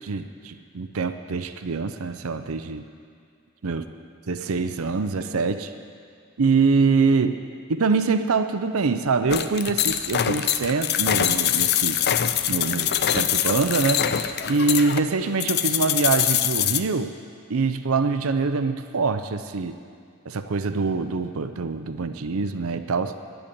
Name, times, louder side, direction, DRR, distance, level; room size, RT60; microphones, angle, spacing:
voice 1, 0.0-2.8 3.6-3.9 4.3-5.7 6.4-7.4 7.7-12.0 12.5-14.1 14.5-17.2 17.5-19.8 20.3-23.2, right 4 dB, 80° right, 9 dB, 0.6 m, -24 dB
sound 1, 9.3-16.8, left 10 dB, 50° left, 0.5 m, -24 dB
11.0 x 8.0 x 8.7 m, 2.4 s
head